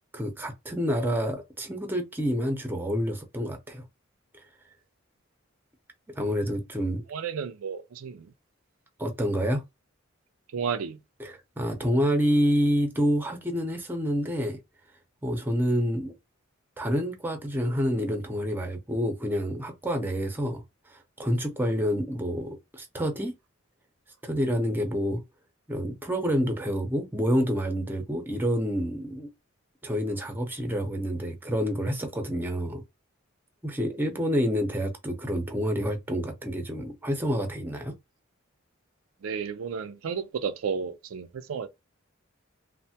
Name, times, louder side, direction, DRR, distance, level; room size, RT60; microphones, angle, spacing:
voice 1, 0.1-3.8 6.1-7.0 9.0-9.6 11.2-14.6 15.2-16.1 16.8-20.6 20.9-23.3 24.2-25.2 25.7-29.3 29.8-32.8 33.6-37.9, equal, 10° right, 0.6 m, -28 dB
voice 2, 7.1-8.3 10.5-11.0 39.2-41.7, right 6 dB, 90° right, 0.4 m, -32 dB
3.2 x 2.1 x 2.7 m
head